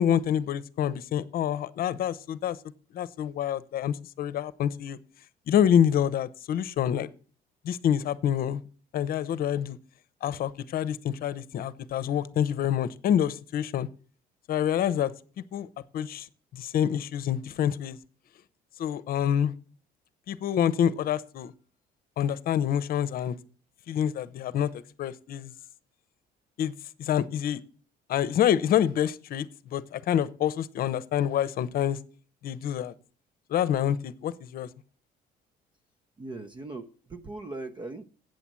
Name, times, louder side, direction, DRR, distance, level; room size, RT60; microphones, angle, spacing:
voice 1, 0.0-2.6 2.9-5.0 5.5-7.1 7.6-8.6 8.9-9.8 10.2-13.9 14.5-15.1 15.5-15.7 15.9-16.3 16.5-18.0 18.8-19.5 20.3-21.5 22.2-23.3 23.9-24.7 25.0-25.5 26.6-26.7 27.0-27.6 28.1-29.5 29.7-32.0 32.4-32.9 33.5-34.7, left 9 dB, 60° left, 16 dB, 0.8 m, -27 dB
voice 2, 36.2-38.0, right 2 dB, 25° right, 6 dB, 0.8 m, -39 dB
8.4 x 7.8 x 7.5 m, 0.41 s
cardioid pair, 110°, 17 cm